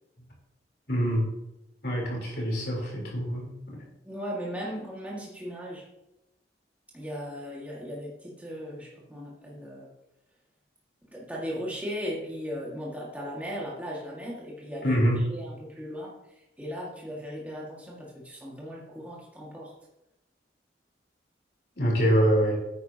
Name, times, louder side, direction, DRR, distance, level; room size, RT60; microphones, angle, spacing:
voice 1, 0.9-1.3 1.8-3.8 14.8-15.3 21.8-22.6, equal, 60° left, -2 dB, 3.8 m, -25 dB
voice 2, 4.0-5.9 6.9-9.9 11.1-19.7, equal, 10° right, -5 dB, 1.9 m, -37 dB
10.5 x 9.4 x 2.9 m, 0.91 s
head